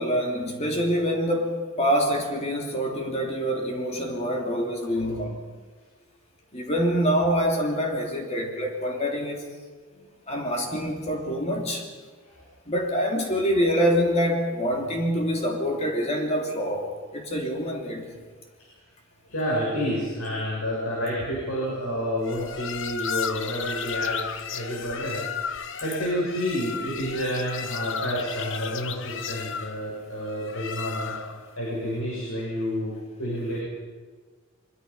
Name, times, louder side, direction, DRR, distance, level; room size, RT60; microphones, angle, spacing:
voice 1, 0.0-5.4 6.5-9.4 10.3-11.8 12.7-18.1, equal, 30° left, 1 dB, 3.0 m, -26 dB
voice 2, 19.3-31.2 31.6-32.9 33.2-33.6, equal, 85° left, -5 dB, 7.3 m, -30 dB
sound 1, 22.2-31.5, left 7 dB, 60° left, 0.9 m, -34 dB
24.0 x 23.0 x 5.6 m, 1.5 s
head